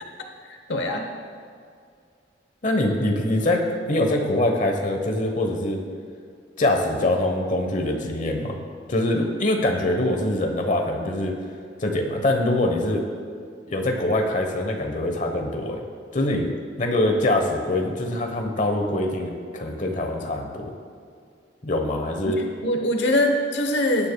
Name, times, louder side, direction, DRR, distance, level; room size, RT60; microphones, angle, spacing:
voice 1, 0.7-1.0 22.4-24.1, left 1 dB, 75° left, 3 dB, 1.1 m, -23 dB
voice 2, 2.6-5.8 6.6-8.6 8.9-11.4 11.8-13.0 13.7-15.8 16.1-16.5 16.8-20.7 21.6-22.4, left 1 dB, 45° left, 3 dB, 1.1 m, -24 dB
18.5 x 9.9 x 2.3 m, 2.2 s
head